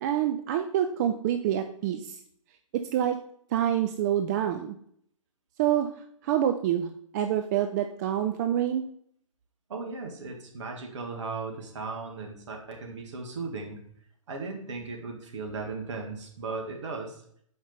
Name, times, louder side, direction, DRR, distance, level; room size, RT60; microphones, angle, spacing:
voice 1, 0.0-2.2 2.7-3.2 3.5-4.8 5.6-5.9 6.2-6.9 7.1-8.8, right 10 dB, 30° right, 6 dB, 0.4 m, -26 dB
voice 2, 9.7-13.8 14.3-17.2, right 4 dB, 55° right, 1 dB, 1.7 m, -37 dB
6.5 x 5.0 x 4.0 m, 0.66 s
figure-of-eight pair, 125°, 18 cm